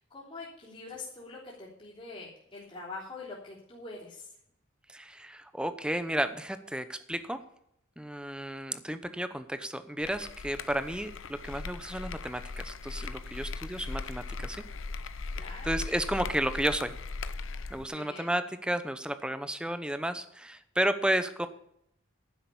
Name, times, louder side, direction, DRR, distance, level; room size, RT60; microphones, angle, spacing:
voice 1, 0.1-4.3 15.3-15.7 17.9-18.3, left 3 dB, 30° left, -8 dB, 3.5 m, -44 dB
voice 2, 4.9-7.4 8.0-14.6 15.6-16.9 17.7-21.5, right 1 dB, 5° right, 11 dB, 0.8 m, -32 dB
sound 1, 10.0-17.8, left 3 dB, 75° left, 0.7 m, -39 dB
10.5 x 7.5 x 8.5 m, 0.72 s
head